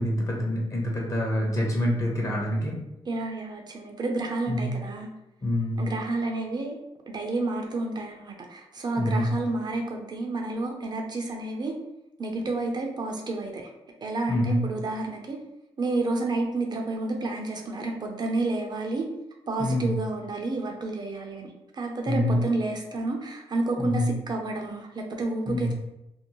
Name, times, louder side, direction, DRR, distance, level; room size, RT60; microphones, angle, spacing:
voice 1, 0.0-2.7 4.5-4.7 5.4-5.8 9.0-9.3 14.3-14.6 19.6-19.9 22.1-22.4 23.8-24.1 25.5-25.7, left 1 dB, 30° left, -2 dB, 0.9 m, -26 dB
voice 2, 3.1-5.1 5.8-6.8 7.1-11.7 12.2-13.7 14.0-15.4 15.8-19.1 19.5-21.5 21.7-25.7, right 2 dB, 45° right, 2 dB, 0.5 m, -30 dB
2.6 x 2.1 x 2.9 m, 0.88 s
cardioid pair, 80°, 10 cm